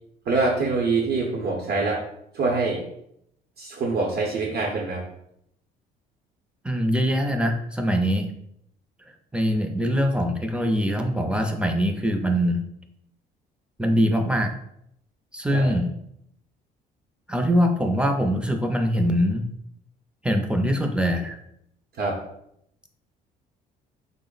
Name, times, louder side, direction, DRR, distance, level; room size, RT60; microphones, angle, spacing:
voice 1, 0.3-2.0 2.3-2.8 3.6-5.0 15.5-15.8 22.0-22.2, right 3 dB, 65° right, -2 dB, 0.8 m, -25 dB
voice 2, 6.6-8.3 9.3-12.6 13.8-14.5 15.3-15.9 17.3-19.4 20.2-21.3, equal, 5° right, 4 dB, 0.4 m, -23 dB
3.6 x 2.0 x 3.8 m, 0.75 s
cardioid pair, 110°, 17 cm